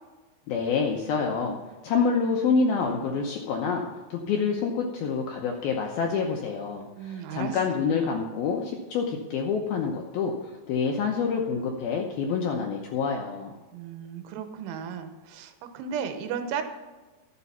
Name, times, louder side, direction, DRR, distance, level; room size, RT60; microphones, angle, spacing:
voice 1, 0.5-1.6 1.8-3.8 4.1-13.6, left 5 dB, 80° left, 1 dB, 2.2 m, -27 dB
voice 2, 7.0-7.8 13.7-16.6, right 7 dB, 85° right, 8 dB, 3.3 m, -35 dB
12.5 x 7.6 x 5.6 m, 1.2 s
omnidirectional pair, 5.5 m